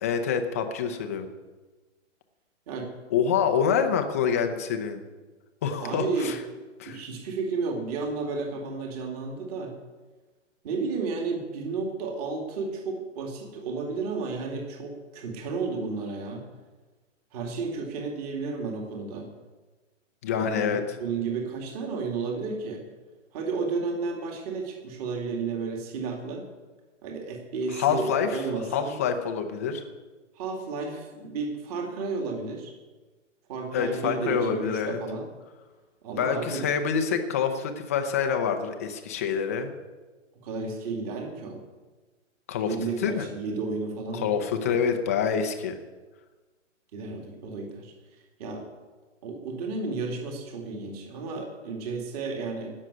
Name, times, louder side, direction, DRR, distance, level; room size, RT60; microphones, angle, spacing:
voice 1, 0.0-1.3 3.1-5.0 5.6-6.4 6.8-7.0 20.2-20.8 27.7-28.4 28.7-29.8 33.7-35.0 36.2-39.7 42.5-42.7 43.0-43.3 44.1-45.8, left 7 dB, 10° left, 5 dB, 0.5 m, -26 dB
voice 2, 5.8-6.4 6.9-9.7 10.6-16.4 17.3-19.3 20.3-22.8 23.3-26.5 27.0-28.9 30.4-32.7 33.5-35.3 36.0-36.6 40.4-41.6 42.6-44.8 46.9-47.9 48.4-48.6 49.2-52.7, right 4 dB, 30° right, 1 dB, 2.1 m, -32 dB
17.0 x 6.4 x 9.7 m, 1.3 s
hypercardioid pair, 160°, 38 cm